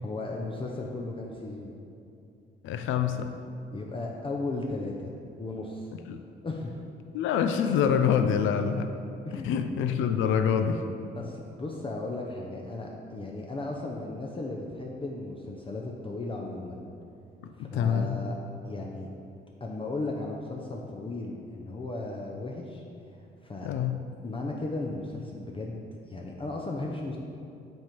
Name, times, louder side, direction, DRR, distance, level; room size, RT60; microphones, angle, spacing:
voice 1, 0.0-1.7 3.7-5.1 5.4-5.9 6.4-6.7 8.4-8.5 9.2-9.6 11.1-16.8 17.5-18.4 18.6-19.1 19.6-22.8 23.1-23.7 24.2-27.2, left 2 dB, 25° left, -1 dB, 0.6 m, -36 dB
voice 2, 2.6-3.3 6.1-6.2 7.1-8.9 9.3-10.8 17.6-18.2 23.6-24.0, left 7 dB, 80° left, 8 dB, 0.4 m, -26 dB
7.8 x 3.7 x 4.5 m, 2.6 s
cardioid pair, 90°, 20 cm